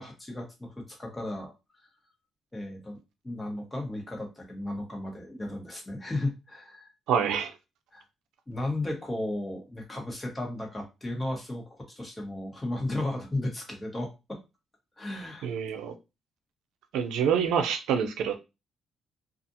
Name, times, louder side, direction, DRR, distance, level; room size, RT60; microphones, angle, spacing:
voice 1, 0.0-1.5 2.5-3.0 3.2-6.9 7.9-8.0 8.5-14.4 15.0-15.5, left 1 dB, 15° left, 1.1 m, -34 dB
voice 2, 7.1-7.5 15.4-15.9 16.9-18.3, right 7 dB, 85° right, 0.5 m, -26 dB
2.5 x 2.4 x 2.6 m
cardioid pair, 90°, 0 cm